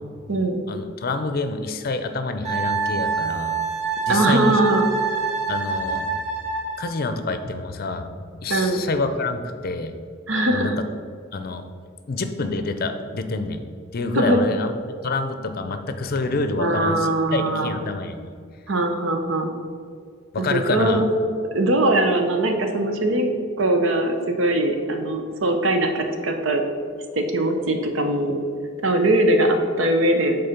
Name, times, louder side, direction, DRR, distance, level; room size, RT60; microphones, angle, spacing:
voice 1, 0.7-3.6 4.1-4.6 5.5-6.1 6.8-8.1 8.4-9.9 10.5-10.7 11.3-11.7 12.1-13.6 13.9-14.7 15.0-18.3 20.3-21.0, left 3 dB, 50° left, 8 dB, 0.5 m, -27 dB
Wind instrument woodwind instrument, 2.4-6.9, right 5 dB, 35° right, 1.9 m, -26 dB
voice 2, 4.1-4.8 8.5-8.8 10.3-10.8 14.1-14.4 16.6-17.8 18.7-19.5 20.4-21.1 21.5-23.3 23.6-26.6 27.1-28.4 28.8-30.4, right 1 dB, 80° right, 5 dB, 0.8 m, -21 dB
6.7 x 4.0 x 5.7 m, 2.1 s
head